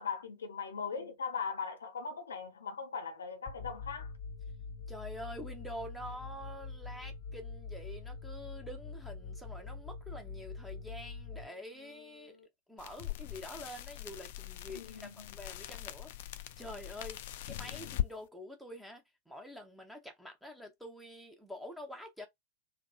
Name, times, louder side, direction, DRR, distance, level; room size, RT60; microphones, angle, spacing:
voice 1, 0.0-4.1 14.7-15.4, left 6 dB, 70° left, 0.7 m, -39 dB
sound 1, 3.5-12.5, left 4 dB, 35° left, 0.8 m, -45 dB
voice 2, 4.9-12.4 12.7-22.3, equal, ahead, 0.8 m, -47 dB
sound 2, 12.8-18.1, left 13 dB, 55° left, 0.4 m, -41 dB
3.5 x 2.2 x 2.2 m
figure-of-eight pair, 90°, 0 cm